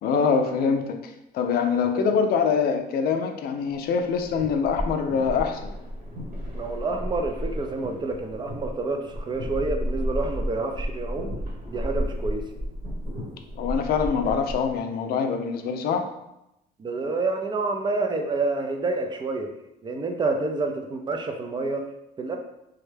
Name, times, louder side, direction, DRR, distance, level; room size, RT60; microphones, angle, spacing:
voice 1, 0.0-5.7 13.6-16.1, left 6 dB, 65° left, 6 dB, 0.4 m, -24 dB
sound 1, 4.2-14.8, equal, 60° right, 1.2 m, -33 dB
voice 2, 6.5-11.3 11.7-12.5 16.8-19.5 19.8-21.8 22.2-22.4, right 3 dB, 25° right, 4 dB, 0.4 m, -28 dB
3.4 x 2.1 x 3.2 m, 0.87 s
cardioid pair, 110°, 17 cm